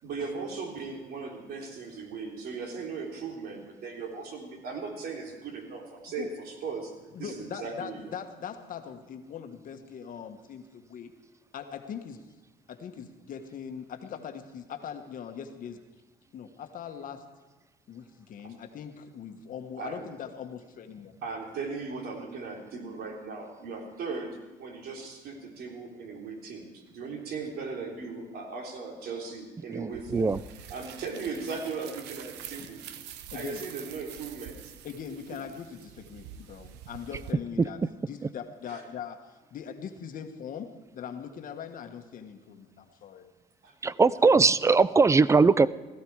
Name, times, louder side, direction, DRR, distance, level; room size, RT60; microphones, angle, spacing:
voice 1, 0.0-6.9 7.2-8.1 19.8-20.1 21.2-30.3 30.7-32.8 33.3-34.7 38.7-38.8 43.6-43.7, right 4 dB, 65° right, 1 dB, 3.3 m, -38 dB
voice 2, 7.1-11.1 11.5-12.2 12.7-15.8 16.3-17.2 17.9-21.1 33.3-33.6 34.8-37.8 38.1-43.2, left 7 dB, 55° left, 6 dB, 1.5 m, -41 dB
voice 3, 29.7-30.4 37.6-37.7 43.8-45.7, right 4 dB, 15° right, 18 dB, 0.4 m, -21 dB
sound 1, 29.9-37.3, right 10 dB, 90° right, 0.9 m, -46 dB
16.5 x 14.5 x 4.8 m, 1.2 s
cardioid pair, 110°, 17 cm